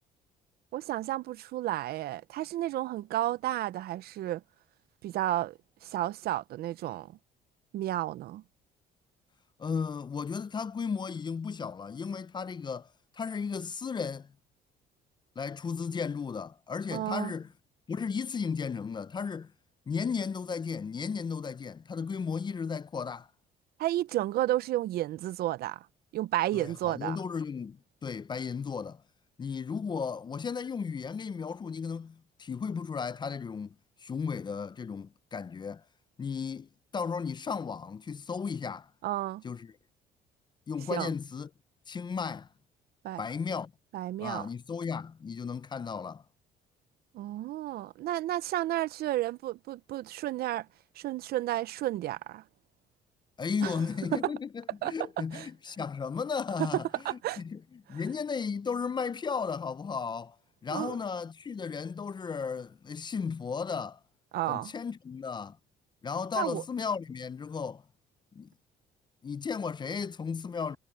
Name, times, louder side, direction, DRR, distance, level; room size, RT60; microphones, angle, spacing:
voice 1, 0.7-4.4 5.0-7.1 7.7-8.4 16.9-17.3 23.8-25.9 26.1-27.2 39.0-39.4 40.9-41.1 43.0-43.2 43.9-44.5 47.1-50.7 51.0-52.4 53.6-53.8 54.1-54.2 54.8-54.9 55.3-55.5 56.6-56.7 57.0-57.4 60.7-61.0 64.3-64.7 66.4-66.6, right 14 dB, 65° right, 0.6 m, -32 dB
voice 2, 9.6-12.9 13.1-14.3 15.4-17.5 17.9-19.5 19.9-23.3 26.5-29.0 29.4-33.7 34.0-35.8 36.2-38.9 39.4-39.7 40.7-41.5 41.9-42.5 43.2-43.7 44.2-46.2 53.4-60.4 60.6-64.0 64.5-65.6 66.0-67.8 68.3-68.5 69.2-70.8, left 5 dB, 25° left, 0.5 m, -35 dB
cardioid pair, 110°, 17 cm